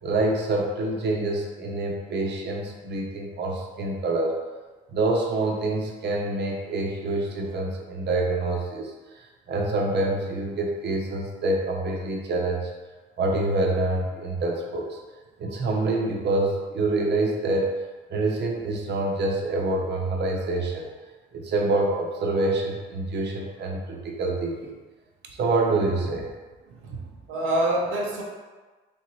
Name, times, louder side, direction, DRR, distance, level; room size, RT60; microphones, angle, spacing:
voice 1, 0.0-4.4 4.9-8.9 9.2-12.7 13.2-15.0 15.4-17.7 18.1-20.9 21.3-24.7 25.4-26.3, right 2 dB, 60° right, 0 dB, 0.8 m, -26 dB
voice 2, 26.7-28.2, right 1 dB, 90° right, -2 dB, 0.7 m, -27 dB
3.5 x 3.1 x 4.1 m, 1.3 s
cardioid pair, 90°, 20 cm